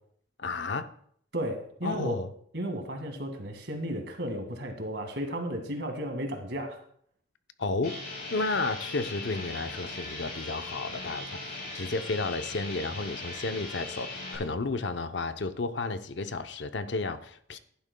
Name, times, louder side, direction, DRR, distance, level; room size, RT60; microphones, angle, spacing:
voice 1, 0.4-0.9 1.8-2.3 7.6-8.0 8.3-17.6, left 3 dB, 70° left, 0.7 m, -32 dB
voice 2, 1.3-2.2 2.5-6.8, equal, 65° right, 1.9 m, -34 dB
sound 1, 7.8-14.4, left 2 dB, 55° left, 4.1 m, -39 dB
15.0 x 11.0 x 2.2 m
head